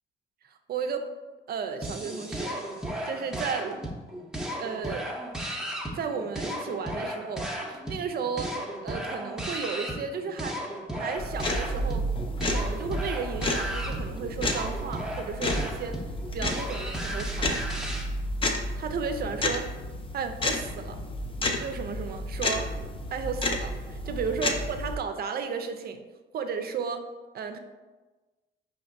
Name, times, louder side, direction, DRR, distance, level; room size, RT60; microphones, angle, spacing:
voice 1, 0.7-1.1 1.5-2.7 3.1-3.8 4.6-5.1 5.9-8.5 8.8-10.6 10.9-12.1 12.4-16.0 16.3-17.6 18.8-19.7 20.1-21.0 21.6-22.7 23.1-26.0 26.3-27.1 27.3-27.6, right 6 dB, 50° right, 7 dB, 0.4 m, -34 dB
sound 1, 1.8-18.1, equal, 5° right, 0.7 m, -35 dB
sound 2, 11.2-25.0, left 1 dB, 25° left, 0.5 m, -31 dB
5.1 x 2.9 x 2.5 m, 1.3 s
cardioid pair, 90°, 20 cm